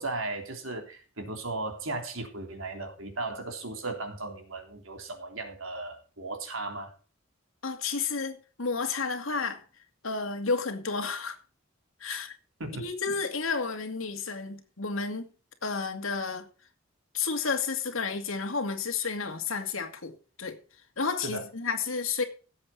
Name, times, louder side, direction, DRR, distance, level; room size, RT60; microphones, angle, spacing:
voice 1, 0.0-6.9 12.6-13.2 21.2-21.4, right 2 dB, 85° right, 3.4 m, -36 dB
voice 2, 7.6-9.6 10.0-11.4 12.0-12.3 12.8-15.3 15.6-16.5 17.1-20.6 21.0-22.2, left 4 dB, 85° left, 2.3 m, -31 dB
16.5 x 8.0 x 4.4 m
head